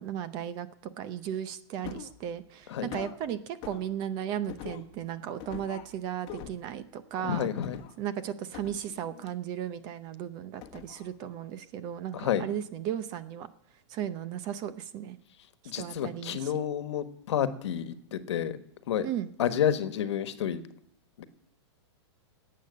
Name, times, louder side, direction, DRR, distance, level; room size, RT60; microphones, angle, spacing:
voice 1, 0.0-7.5 8.0-13.5 13.9-15.2 15.7-16.5 19.0-19.3, right 10 dB, 30° right, 13 dB, 0.7 m, -35 dB
sound 1, 1.8-2.2 2.9-3.2 3.6-3.9 4.5-4.9 5.4-5.9 6.3-6.7 7.6-8.0 8.5-9.3 10.6-11.1 11.4-11.5, left 10 dB, 30° left, 1.3 m, -43 dB
voice 2, 7.2-7.8 12.1-12.5 15.6-18.6 18.9-19.1 19.4-20.6 21.2-21.3, left 9 dB, 75° left, 10 dB, 1.3 m, -30 dB
12.0 x 8.6 x 9.6 m, 0.70 s
supercardioid pair, 160°, 15 cm